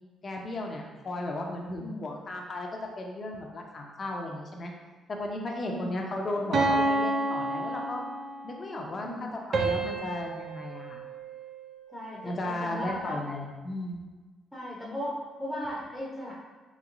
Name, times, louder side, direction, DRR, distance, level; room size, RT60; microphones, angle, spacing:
voice 1, 0.2-2.7 3.0-4.7 5.1-8.1 8.4-11.0 12.2-14.0, left 1 dB, 40° left, 1 dB, 0.6 m, -35 dB
sound 1, 6.5-8.5 9.5-11.9, right 2 dB, 55° right, 0.4 m, -30 dB
voice 2, 9.0-9.4 11.9-13.2 14.5-16.3, left 1 dB, ahead, -6 dB, 0.7 m, -37 dB
3.1 x 3.0 x 2.5 m, 1.3 s
cardioid pair, 90°, 0 cm